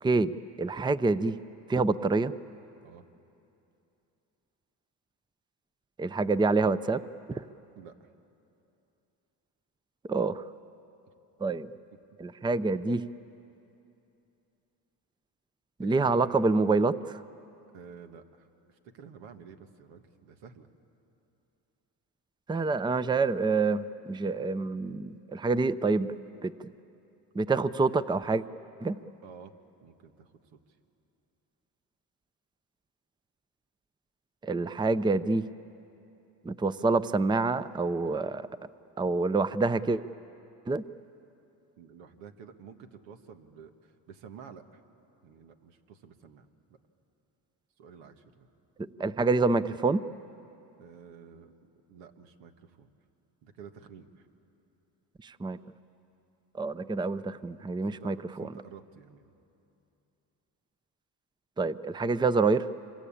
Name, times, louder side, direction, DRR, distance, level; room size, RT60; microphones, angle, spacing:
voice 1, 0.0-1.4 1.7-2.3 6.0-7.0 7.3-7.4 10.1-10.4 11.4-11.7 12.2-13.0 15.8-17.2 22.5-26.1 26.4-26.7 27.3-28.4 28.8-29.0 34.4-35.5 36.4-38.5 39.0-40.0 40.7-40.8 48.8-50.0 55.2-55.6 56.6-58.5 61.6-62.7, right 3 dB, 10° right, 15 dB, 0.5 m, -27 dB
voice 2, 7.8-8.1 15.8-16.3 17.7-20.7 29.2-29.5 29.8-30.6 41.8-44.8 45.2-46.8 47.8-48.5 50.8-51.5 51.9-52.9 53.4-54.3 57.9-59.3, right 6 dB, 90° right, 7 dB, 1.5 m, -50 dB
26.0 x 22.5 x 8.6 m, 2.8 s
supercardioid pair, 80°, 43 cm